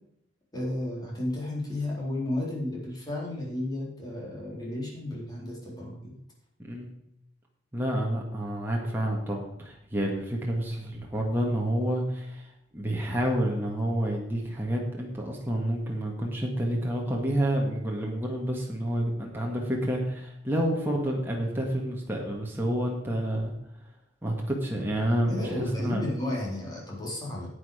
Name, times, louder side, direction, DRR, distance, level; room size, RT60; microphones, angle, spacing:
voice 1, 0.5-6.1 25.2-27.5, left 1 dB, 20° left, -4 dB, 4.1 m, -33 dB
voice 2, 6.6-6.9 7.7-12.5 12.7-23.5 24.2-26.1, right 1 dB, 10° right, -2 dB, 1.9 m, -29 dB
10.0 x 8.7 x 5.1 m, 0.80 s
head